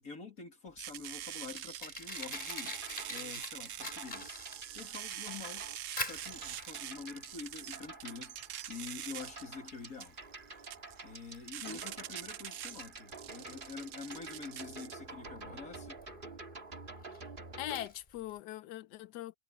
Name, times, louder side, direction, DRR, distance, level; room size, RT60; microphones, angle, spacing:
voice 1, 0.0-2.8 3.1-4.4 4.7-5.7 6.0-8.4 8.7-10.2 11.0-16.0, left 4 dB, 50° left, 3.3 m, -47 dB
Fire, 0.7-18.4, left 1 dB, 25° left, 3.6 m, -47 dB
sound 1, 0.8-14.9, right 12 dB, 75° right, 0.7 m, -45 dB
sound 2, 2.1-17.9, right 3 dB, 25° right, 2.2 m, -49 dB
voice 2, 17.6-19.4, left 14 dB, 70° left, 1.2 m, -41 dB
omnidirectional pair, 2.0 m